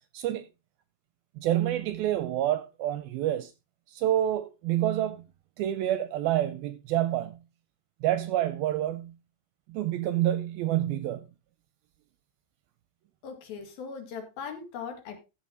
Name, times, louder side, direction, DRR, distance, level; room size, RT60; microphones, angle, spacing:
voice 1, 0.1-0.5 1.4-3.5 3.9-5.2 5.6-7.4 8.0-9.1 9.7-11.3, right 12 dB, 80° right, 2.2 m, -28 dB
voice 2, 13.2-15.2, left 6 dB, 65° left, 3.9 m, -39 dB
14.0 x 7.4 x 4.0 m
omnidirectional pair, 4.8 m